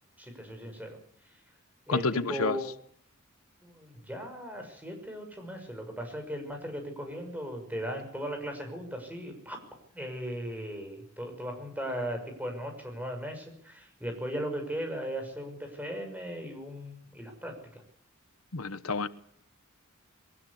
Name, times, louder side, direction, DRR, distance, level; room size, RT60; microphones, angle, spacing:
voice 1, 0.2-1.0 1.2-1.3 1.9-2.7 3.6-9.6 9.9-17.8, equal, 10° right, 6.1 m, -37 dB
voice 2, 1.9-2.6 18.5-19.1, left 4 dB, 85° left, 1.1 m, -29 dB
22.0 x 20.0 x 8.5 m
head